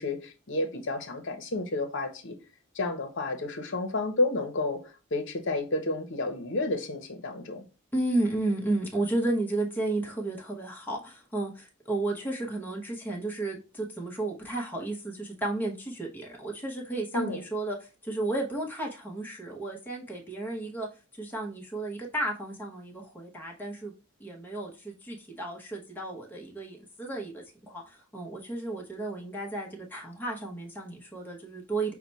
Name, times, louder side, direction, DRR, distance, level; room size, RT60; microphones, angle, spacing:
voice 1, 0.0-2.4 2.7-4.8 5.1-7.6 17.1-17.4, left 2 dB, 60° left, 0.9 m, -31 dB
voice 2, 7.9-20.9 21.2-23.9 24.2-31.9, right 2 dB, 10° left, 0.9 m, -33 dB
5.9 x 2.2 x 4.0 m
head